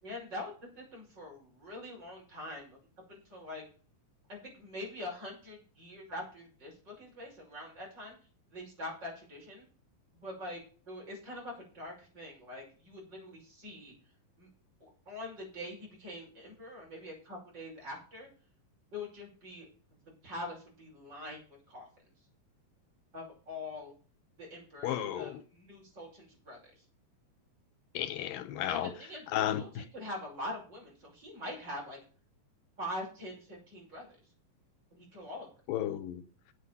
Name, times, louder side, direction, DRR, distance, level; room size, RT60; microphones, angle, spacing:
voice 1, 0.0-2.8 3.1-3.6 4.3-8.1 8.5-9.6 10.2-10.6 10.9-13.9 14.4-14.5 14.8-18.3 18.9-19.7 20.0-21.4 21.7-21.9 23.1-23.9 24.4-26.8 28.7-29.7 29.9-32.0 32.8-34.1 34.9-35.5, left 1 dB, 30° right, 6.3 m, -44 dB
voice 2, 24.8-25.4 27.9-28.9 29.3-29.8 35.7-36.2, left 11 dB, 85° left, 2.6 m, -33 dB
8.7 x 8.4 x 6.8 m
omnidirectional pair, 4.0 m